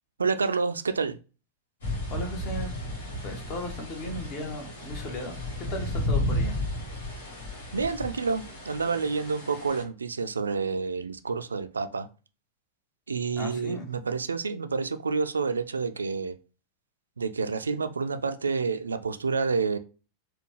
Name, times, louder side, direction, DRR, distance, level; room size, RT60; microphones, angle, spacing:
voice 1, 0.2-1.2 7.7-12.1 13.1-16.4 17.2-19.8, right 4 dB, 75° right, 9 dB, 0.3 m, -29 dB
sound 1, 1.8-9.8, left 1 dB, 65° left, 1.5 m, -33 dB
voice 2, 2.1-2.7 3.2-5.4 5.7-6.6 13.4-13.9, left 1 dB, 40° left, 3 dB, 1.1 m, -36 dB
4.3 x 2.2 x 3.1 m, 0.33 s
figure-of-eight pair, 90°, 0 cm